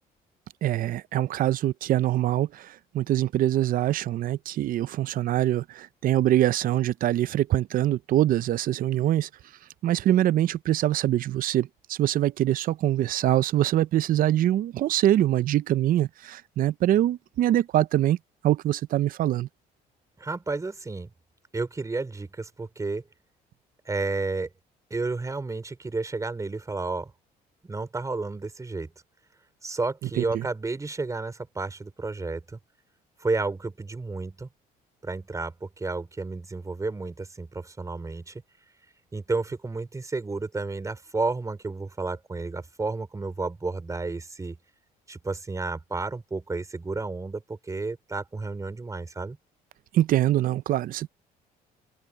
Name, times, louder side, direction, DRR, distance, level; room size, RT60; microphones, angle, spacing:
voice 1, 0.6-2.5 2.9-9.3 9.8-18.2 18.4-19.5 49.9-51.1, right 13 dB, 55° right, 0.5 m, -24 dB
voice 2, 20.2-21.1 21.5-23.0 23.9-24.5 24.9-27.1 27.6-28.9 29.6-32.6 33.2-34.5 35.0-38.4 39.1-44.6 45.1-49.4, right 3 dB, 20° right, 4.1 m, -31 dB
cardioid pair, 110°, 17 cm